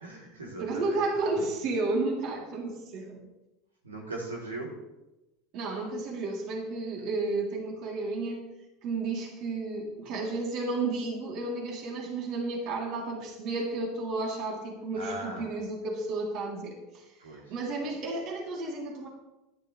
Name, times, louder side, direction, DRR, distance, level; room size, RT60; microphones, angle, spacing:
voice 1, 0.0-1.0 3.8-4.7 14.9-15.6 17.2-17.5, right 2 dB, 85° right, -1 dB, 3.3 m, -39 dB
voice 2, 0.6-3.2 5.5-8.4 8.8-17.0 17.3-19.1, right 3 dB, 50° right, -1 dB, 3.2 m, -32 dB
14.0 x 11.5 x 3.3 m, 0.98 s
hypercardioid pair, 80°, 0 cm